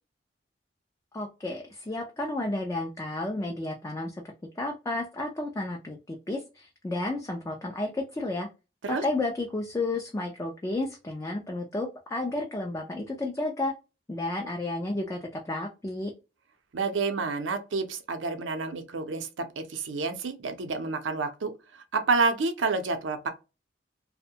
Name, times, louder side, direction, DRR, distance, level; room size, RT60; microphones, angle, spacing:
voice 1, 1.1-4.2 4.6-8.5 8.9-13.7 14.1-16.1, left 2 dB, 15° left, 0.3 m, -32 dB
voice 2, 16.7-23.3, right 4 dB, 90° right, 0.6 m, -29 dB
2.6 x 2.1 x 2.7 m
head